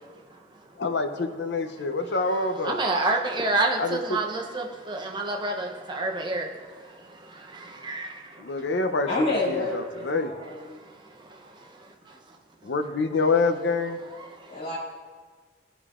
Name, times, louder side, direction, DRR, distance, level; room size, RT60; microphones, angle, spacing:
voice 1, 0.8-2.8 3.8-4.2 8.4-9.1 9.5-10.3 12.6-14.0, left 3 dB, 70° left, 6 dB, 0.6 m, -26 dB
voice 2, 2.6-6.5 7.1-8.2, right 2 dB, 25° right, 2 dB, 0.7 m, -28 dB
voice 3, 9.1-10.8 14.5-14.8, left 2 dB, 35° left, -9 dB, 2.3 m, -28 dB
14.0 x 5.1 x 2.4 m, 1.5 s
head